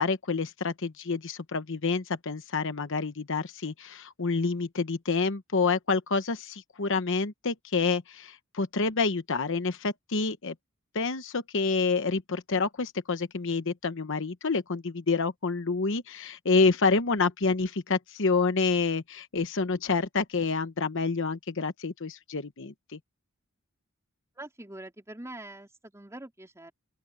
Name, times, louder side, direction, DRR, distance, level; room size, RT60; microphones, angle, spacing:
voice 1, 0.0-10.5 10.9-23.0, left 4 dB, 60° left, 1.0 m, -28 dB
voice 2, 24.4-26.7, right 1 dB, 15° right, 3.4 m, -44 dB
open air
head